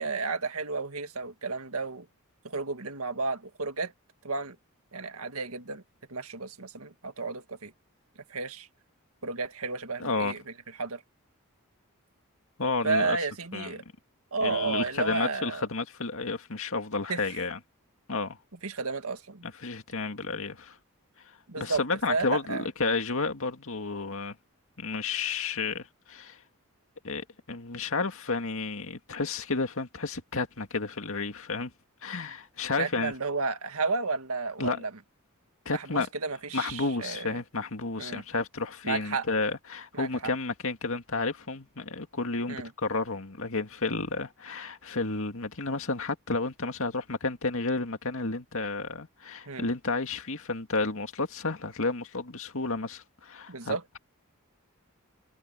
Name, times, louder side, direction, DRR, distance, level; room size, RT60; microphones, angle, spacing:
voice 1, 0.0-2.1 2.4-3.9 4.2-4.6 4.9-5.8 6.1-7.7 8.3-8.7 9.2-10.4 10.8-11.0 12.8-13.8 14.3-15.6 17.1-17.4 18.6-19.4 21.5-21.8 22.1-22.7 32.8-34.9 35.7-37.4 38.0-38.2 38.8-39.3 39.9-40.3 42.5-42.7 49.5-49.7 53.5-53.8, right 4 dB, 75° right, 1.9 m, -32 dB
voice 2, 10.0-10.3 12.6-13.2 13.5-13.8 14.4-17.6 18.1-18.4 19.4-20.8 21.6-24.4 24.8-26.4 27.0-31.7 32.0-33.1 34.6-34.8 35.7-36.1 36.5-54.0, left 3 dB, 65° left, 2.3 m, -31 dB
head